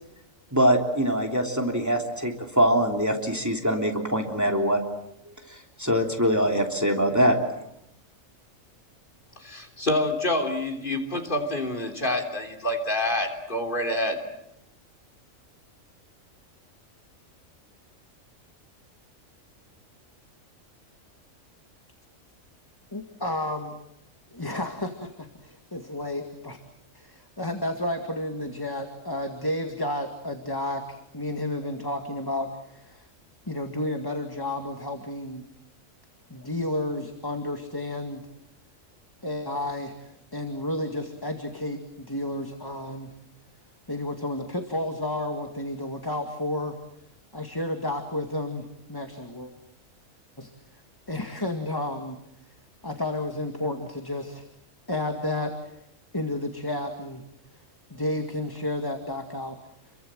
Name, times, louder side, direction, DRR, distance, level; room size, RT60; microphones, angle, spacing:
voice 1, 0.5-4.8 5.8-7.4, equal, 10° right, 2 dB, 3.4 m, -23 dB
voice 2, 9.4-14.2, left 1 dB, 35° left, 6 dB, 3.8 m, -27 dB
voice 3, 22.9-23.8 24.3-26.6 26.9-33.1 33.5-35.4 36.3-38.2 39.2-39.9 40.3-43.1 43.9-46.7 47.3-49.5 50.4-50.5 51.1-52.2 52.8-54.4 54.9-55.8 56.1-57.2 57.9-59.6, left 1 dB, 15° left, 4 dB, 2.1 m, -31 dB
29.5 x 23.5 x 7.7 m, 0.79 s
omnidirectional pair, 1.4 m